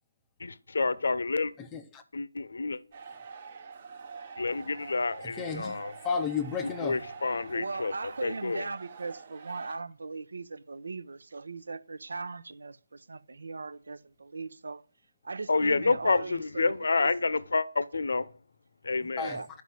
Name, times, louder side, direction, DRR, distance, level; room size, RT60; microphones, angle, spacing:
voice 1, 0.4-1.5 2.1-2.8 4.4-5.9 6.8-7.9 8.2-8.7 15.5-18.3 18.8-19.4, left 3 dB, 60° left, 0.8 m, -28 dB
voice 2, 1.7-2.0 5.2-5.7 6.0-7.0 19.2-19.4, left 6 dB, 10° left, 0.6 m, -32 dB
sound 1, 2.9-9.7, right 5 dB, 25° right, 1.1 m, -46 dB
voice 3, 7.5-14.9 15.2-16.7 17.0-17.3 19.2-19.5, right 4 dB, 60° right, 0.9 m, -39 dB
11.0 x 5.5 x 7.8 m
hypercardioid pair, 175°, 0 cm